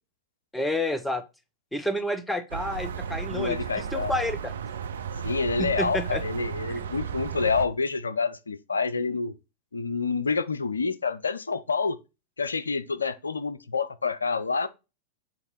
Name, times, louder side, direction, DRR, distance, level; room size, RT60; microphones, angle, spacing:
voice 1, 0.5-1.2 1.7-4.5 5.6-6.2, left 1 dB, 5° left, 0.8 m, -29 dB
sound 1, 2.5-7.7, right 7 dB, 65° right, 0.5 m, -34 dB
voice 2, 3.3-4.1 5.2-9.3 9.7-12.0 12.4-14.7, left 4 dB, 75° left, 0.5 m, -28 dB
8.1 x 3.1 x 4.1 m
figure-of-eight pair, 90°, 0 cm